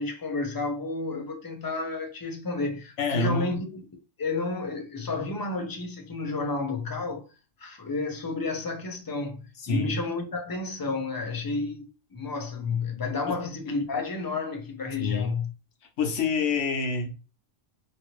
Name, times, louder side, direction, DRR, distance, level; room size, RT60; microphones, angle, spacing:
voice 1, 0.0-3.8 4.2-7.3 7.6-11.9 12.1-15.5, left 3 dB, 30° left, 0.4 m, -31 dB
voice 2, 3.0-3.6 9.6-10.0 13.3-13.4 15.0-15.3 16.0-17.2, left 3 dB, 70° left, 1.1 m, -27 dB
3.0 x 2.6 x 3.0 m
omnidirectional pair, 1.3 m